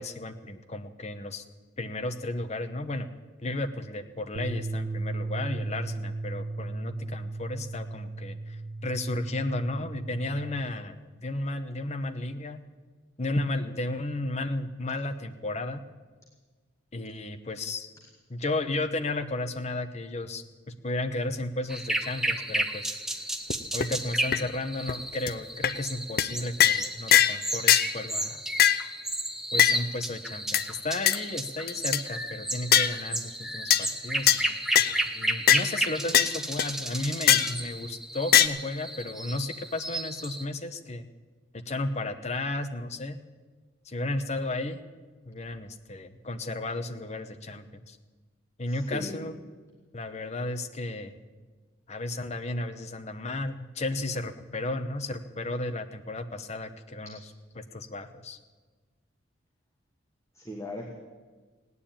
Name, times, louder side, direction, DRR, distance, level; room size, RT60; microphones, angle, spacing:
voice 1, 0.0-1.4 1.8-3.1 3.4-12.6 13.2-15.8 16.9-17.9 18.3-23.0 23.7-28.4 29.5-41.1 41.5-43.2 43.8-44.8 45.3-48.0 48.6-49.4 49.9-51.2 51.9-57.2 57.5-58.4, left 2 dB, 35° left, 8 dB, 1.0 m, -33 dB
sound 1, 4.4-10.6, right 2 dB, 60° right, 1.3 m, -35 dB
sound 2, 21.7-40.4, right 1 dB, ahead, 0.8 m, -33 dB
sound 3, 23.5-23.6 23.8-23.9 24.3-24.4 24.9-25.0 25.3-25.4 25.6-25.8 26.2-26.3 26.6-26.8 27.1-27.4 27.7-27.9 28.6-28.8 29.6-29.8 30.5-30.6 31.1-31.2 31.7-32.0 32.7-32.9 33.7-33.9 34.3-34.4 34.8-35.0 35.5-35.6 36.1-36.3 36.6-36.7 37.3-37.5 38.3-38.5, left 10 dB, 50° left, 0.6 m, -20 dB
voice 2, 48.7-49.2 60.3-60.9, left 1 dB, 15° left, -1 dB, 1.4 m, -38 dB
17.0 x 9.7 x 8.8 m, 1.4 s
head